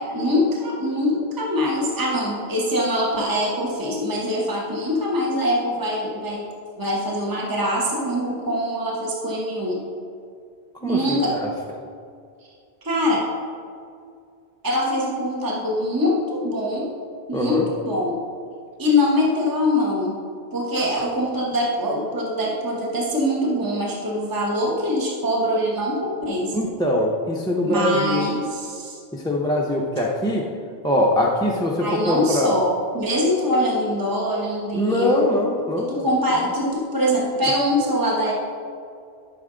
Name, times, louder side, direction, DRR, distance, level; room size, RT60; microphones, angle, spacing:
voice 1, 0.0-6.5 6.8-9.8 10.8-11.4 12.8-13.3 14.6-16.9 17.3-18.2 18.8-20.2 20.5-26.6 27.6-29.0 31.8-35.3 35.8-38.3, left 1 dB, 20° right, -3 dB, 1.2 m, -23 dB
voice 2, 10.8-11.5 17.3-17.6 26.5-28.3 29.1-30.5 30.8-32.5 34.7-35.9, left 1 dB, 5° left, -3 dB, 0.6 m, -22 dB
12.0 x 5.9 x 3.8 m, 2.3 s
omnidirectional pair, 1.1 m